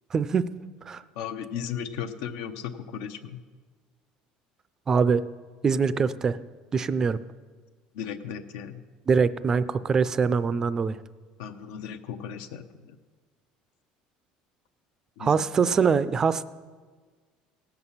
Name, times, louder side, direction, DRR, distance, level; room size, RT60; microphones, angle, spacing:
voice 1, 0.1-0.5 0.9-1.0 4.9-5.2 5.6-6.4 6.7-7.2 9.1-11.0 15.2-16.5, right 5 dB, 20° right, 15 dB, 0.3 m, -23 dB
voice 2, 1.2-3.4 7.9-8.8 11.4-13.0 15.2-15.4, left 8 dB, 85° left, 8 dB, 0.8 m, -36 dB
18.0 x 7.8 x 5.6 m, 1.4 s
cardioid pair, 165°, 3 cm